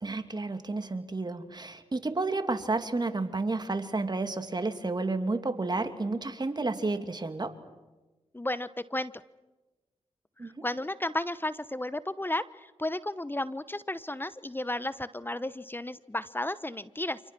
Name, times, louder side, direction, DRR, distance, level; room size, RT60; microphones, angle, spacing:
voice 1, 0.0-7.5 10.4-10.5, right 3 dB, 35° right, 8 dB, 2.5 m, -31 dB
voice 2, 8.3-9.1 10.4-17.2, left 1 dB, 15° left, 16 dB, 1.0 m, -33 dB
30.0 x 27.0 x 6.1 m, 1.2 s
supercardioid pair, 45°, 13 cm